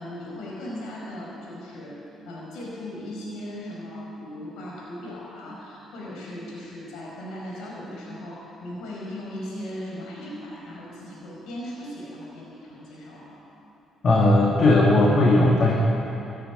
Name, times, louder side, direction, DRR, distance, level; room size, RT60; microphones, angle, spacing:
voice 1, 0.0-2.0 2.3-13.4, left 1 dB, 80° left, -4 dB, 4.7 m, -37 dB
voice 2, 14.0-15.7, left 2 dB, 50° left, -3 dB, 2.3 m, -17 dB
14.5 x 9.8 x 9.6 m, 2.9 s
supercardioid pair, 65°, 0 cm